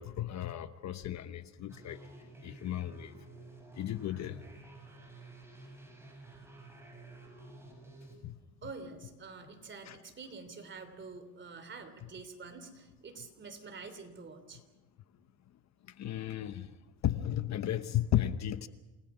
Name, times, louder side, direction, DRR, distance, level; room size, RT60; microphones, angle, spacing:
voice 1, 0.0-2.0 2.4-3.2 3.7-4.4 8.2-8.4 9.9-10.0 15.9-16.8 17.0-18.7, left 12 dB, 45° left, 1.0 m, -34 dB
sound 1, 1.7-8.2, right 2 dB, 5° right, 5.9 m, -52 dB
voice 2, 8.6-14.6, right 4 dB, 30° right, 3.2 m, -47 dB
28.5 x 19.0 x 6.2 m
cardioid pair, 130°, 37 cm